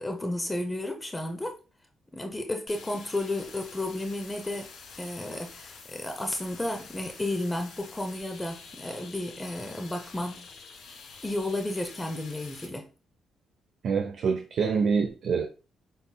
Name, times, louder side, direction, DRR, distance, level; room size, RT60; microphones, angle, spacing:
voice 1, 0.0-1.6 2.1-4.7 5.0-10.5 11.2-12.9, left 1 dB, 15° left, 0.6 m, -32 dB
sound 1, 2.7-12.7, left 5 dB, 70° left, 1.8 m, -48 dB
voice 2, 13.8-15.5, right 5 dB, 60° right, 0.6 m, -26 dB
6.0 x 3.9 x 2.2 m
cardioid pair, 90°, 0 cm